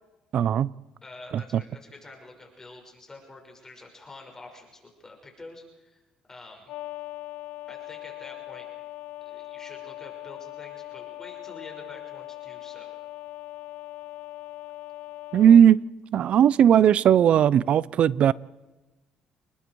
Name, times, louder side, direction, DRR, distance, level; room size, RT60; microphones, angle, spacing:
voice 1, 0.3-0.7 1.3-1.6 15.3-15.8 16.1-18.3, right 9 dB, 55° right, 21 dB, 0.6 m, -18 dB
voice 2, 1.0-6.0 6.3-6.7 7.7-8.7 9.2-12.9, left 2 dB, 20° left, 2 dB, 5.9 m, -47 dB
sound 1, 6.7-15.6, left 16 dB, 70° left, 0.8 m, -40 dB
28.0 x 20.5 x 4.8 m, 1.1 s
cardioid pair, 105°, 2 cm